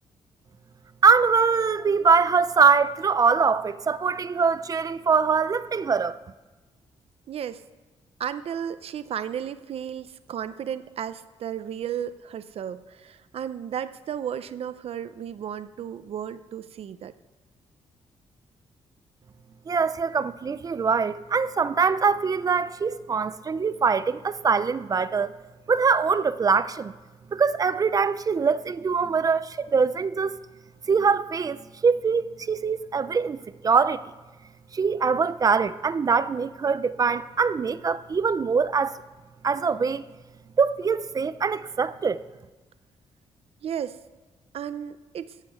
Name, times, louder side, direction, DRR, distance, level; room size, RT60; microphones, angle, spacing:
voice 1, 1.0-6.2 19.7-25.3 25.7-26.9 27.3-30.4 30.9-31.6 31.8-34.0 34.7-39.0 39.4-40.0 40.6-42.2, right 5 dB, 35° right, 0.5 m, -23 dB
voice 2, 7.3-7.6 8.2-17.1 43.6-44.0 44.5-45.3, right 9 dB, 65° right, 0.8 m, -34 dB
14.0 x 7.7 x 8.4 m
cardioid pair, 125°, 11 cm